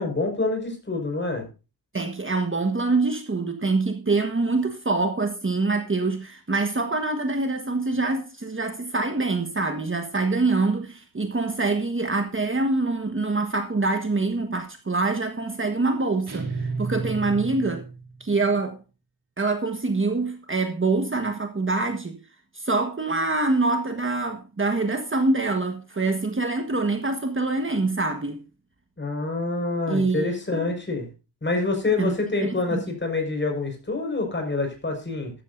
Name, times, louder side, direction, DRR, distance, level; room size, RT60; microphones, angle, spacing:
voice 1, 0.0-1.5 29.0-31.1 31.4-35.3, left 3 dB, 30° left, 5.5 m, -26 dB
voice 2, 1.9-17.8 18.2-18.8 19.4-22.2 22.5-28.4 29.9-30.7 32.0-32.1 32.4-32.8, right 3 dB, 30° right, 1.5 m, -25 dB
sound 1, 16.3-18.3, right 4 dB, 75° right, 3.0 m, -32 dB
14.0 x 12.5 x 2.7 m
wide cardioid pair, 105°, 39 cm